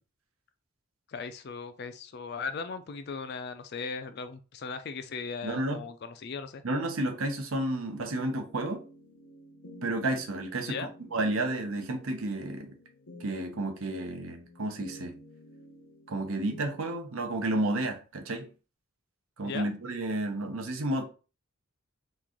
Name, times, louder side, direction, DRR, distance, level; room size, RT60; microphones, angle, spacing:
voice 1, 1.1-6.6 10.6-10.9 19.4-19.7, left 5 dB, 50° left, 0.3 m, -38 dB
voice 2, 5.4-5.8 6.6-8.8 9.8-12.7 13.2-15.1 16.1-18.5 19.4-21.1, right 2 dB, 75° right, 0.7 m, -31 dB
sound 1, 8.0-17.0, equal, 90° left, 1.0 m, -51 dB
3.0 x 2.5 x 3.7 m
head